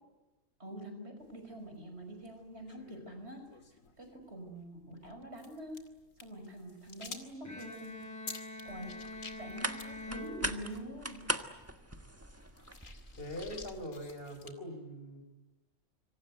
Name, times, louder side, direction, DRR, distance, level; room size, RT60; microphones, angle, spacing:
voice 1, 0.6-3.5 4.0-5.8 6.2-8.0 8.6-11.3, right 1 dB, 55° right, 6 dB, 6.0 m, -46 dB
sound 1, 1.2-14.5, left 3 dB, 80° left, 2.8 m, -53 dB
Bowed string instrument, 7.4-11.2, left 2 dB, 15° left, 4.9 m, -45 dB
sound 2, 8.7-13.9, right 1 dB, 10° right, 1.4 m, -41 dB
voice 2, 13.1-15.2, equal, 50° left, 5 dB, 6.5 m, -42 dB
26.0 x 26.0 x 7.9 m, 1.1 s
omnidirectional pair, 1.3 m